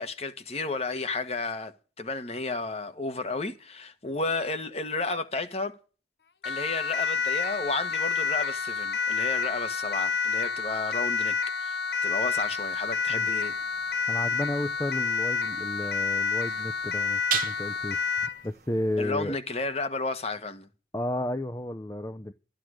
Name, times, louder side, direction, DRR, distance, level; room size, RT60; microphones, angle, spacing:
voice 1, 0.0-5.8 6.4-13.5 19.0-20.7, left 3 dB, 35° left, 1.3 m, -32 dB
Siren, 6.4-18.4, left 5 dB, 65° left, 0.9 m, -29 dB
sound 1, 12.3-19.1, right 10 dB, 50° right, 1.1 m, -40 dB
voice 2, 14.1-19.4 20.9-22.3, left 1 dB, 20° left, 0.6 m, -32 dB
13.5 x 10.5 x 6.3 m
head